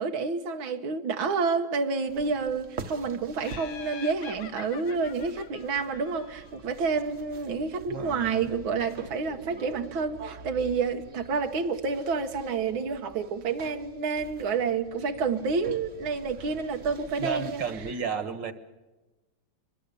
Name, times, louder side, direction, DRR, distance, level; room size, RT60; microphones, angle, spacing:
voice 1, 0.0-17.6, right 5 dB, 80° right, 5 dB, 2.0 m, -29 dB
sound 1, 2.1-17.9, right 4 dB, 40° right, 1.4 m, -46 dB
Laughter, 3.4-6.7, left 8 dB, 80° left, 1.9 m, -45 dB
voice 2, 7.9-8.5 17.2-18.5, right 6 dB, 65° right, 11 dB, 2.2 m, -32 dB
24.5 x 23.0 x 6.9 m, 1.1 s
omnidirectional pair, 2.2 m